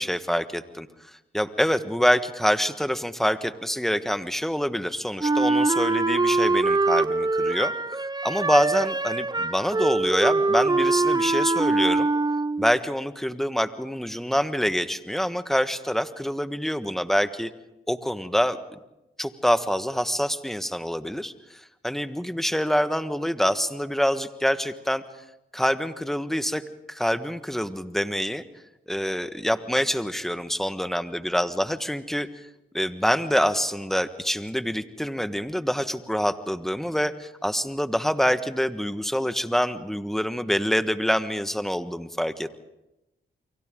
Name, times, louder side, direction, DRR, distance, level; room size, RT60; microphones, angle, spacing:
voice 1, 0.0-7.7 8.2-12.1 12.6-17.5 17.9-18.8 19.2-25.0 25.5-26.6 26.9-28.4 28.9-32.3 32.7-42.5, equal, ahead, 10 dB, 1.5 m, -26 dB
Wind instrument woodwind instrument, 5.2-12.8, right 3 dB, 20° right, 0.7 m, -23 dB
30.0 x 24.0 x 3.8 m, 0.93 s
cardioid pair, 55°, 21 cm